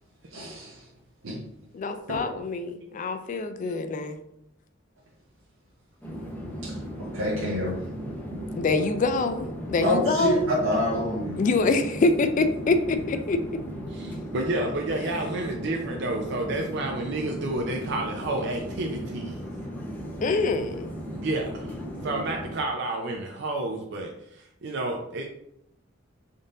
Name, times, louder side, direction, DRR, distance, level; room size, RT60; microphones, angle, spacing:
voice 1, 0.3-0.9 1.2-1.4 2.1-2.3 6.6-7.9 8.3-8.7 9.8-11.4, equal, 90° right, -3 dB, 0.7 m, -28 dB
voice 2, 1.7-4.2 8.6-10.4 11.4-13.4 20.2-20.9, left 3 dB, 40° left, 9 dB, 0.3 m, -25 dB
voice 3, 3.6-4.1 13.9-19.4 21.1-21.8 22.0-25.2, right 2 dB, 60° right, 2 dB, 0.4 m, -30 dB
sound 1, 6.0-22.5, equal, 10° left, 0.7 m, -36 dB
3.7 x 2.6 x 3.7 m, 0.77 s
head